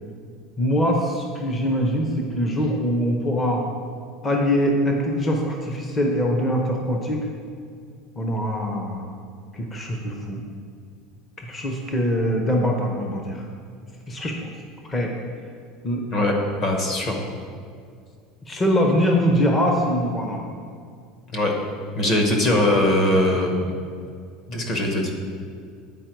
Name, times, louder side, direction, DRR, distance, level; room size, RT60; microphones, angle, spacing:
voice 1, 0.6-3.6 4.2-7.3 8.2-9.1 9.5-10.4 11.4-13.4 14.1-14.5 14.9-15.1 15.8-16.0 18.5-20.4, equal, 15° left, 1 dB, 0.6 m, -23 dB
voice 2, 16.1-17.3 21.3-21.5 22.0-23.6 24.5-25.1, left 1 dB, 35° left, 2 dB, 1.0 m, -21 dB
9.1 x 4.4 x 4.5 m, 2.3 s
cardioid pair, 175°, 0 cm